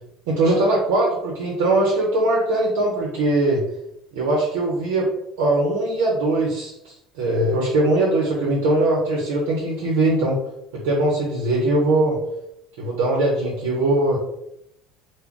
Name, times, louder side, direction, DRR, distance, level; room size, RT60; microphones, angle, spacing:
voice 1, 0.3-3.6 4.1-5.1 5.4-10.4 10.7-12.2 12.8-14.2, right 2 dB, 85° right, -3 dB, 0.6 m, -21 dB
2.3 x 2.1 x 3.6 m, 0.78 s
supercardioid pair, 100°, 0 cm